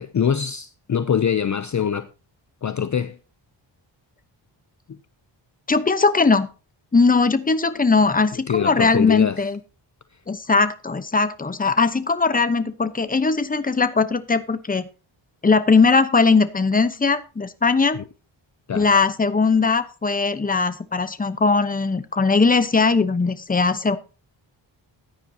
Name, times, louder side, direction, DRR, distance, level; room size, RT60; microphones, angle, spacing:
voice 1, 0.0-2.1 2.6-3.2 4.9-5.0 8.3-9.4 17.9-18.0 18.7-18.9, left 8 dB, 40° left, 0.6 m, -24 dB
voice 2, 5.7-6.5 6.9-9.6 10.3-14.9 15.4-18.0 18.7-24.0, left 4 dB, 20° left, 0.9 m, -19 dB
14.5 x 9.9 x 2.8 m
wide cardioid pair, 145°, 46 cm